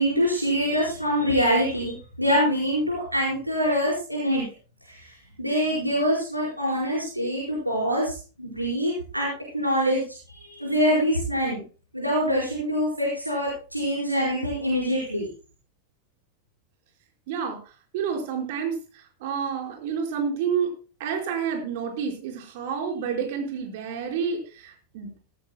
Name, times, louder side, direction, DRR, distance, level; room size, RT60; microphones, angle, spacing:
voice 1, 0.0-4.5 4.9-5.1 5.4-10.0 10.3-11.6 11.9-15.3, equal, 90° right, -4 dB, 4.6 m, -25 dB
voice 2, 17.3-17.6 17.9-20.7 21.0-25.1, right 6 dB, 50° right, 3 dB, 4.7 m, -29 dB
17.5 x 15.0 x 2.2 m, 0.35 s
figure-of-eight pair, 90°, 0 cm